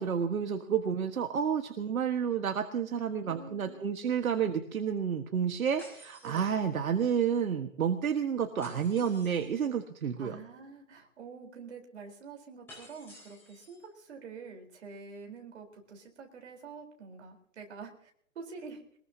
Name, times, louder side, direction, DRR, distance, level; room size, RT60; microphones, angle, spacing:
voice 1, 0.0-10.4, right 7 dB, 70° right, 6 dB, 1.6 m, -30 dB
voice 2, 3.2-3.8 6.2-6.4 10.2-17.9 18.4-18.8, right 5 dB, 50° right, 2 dB, 4.2 m, -47 dB
sound 1, 5.8-7.1 8.6-9.6 12.7-13.9, left 1 dB, 5° left, 5.0 m, -53 dB
22.5 x 20.5 x 2.8 m, 0.64 s
hypercardioid pair, 175°, 43 cm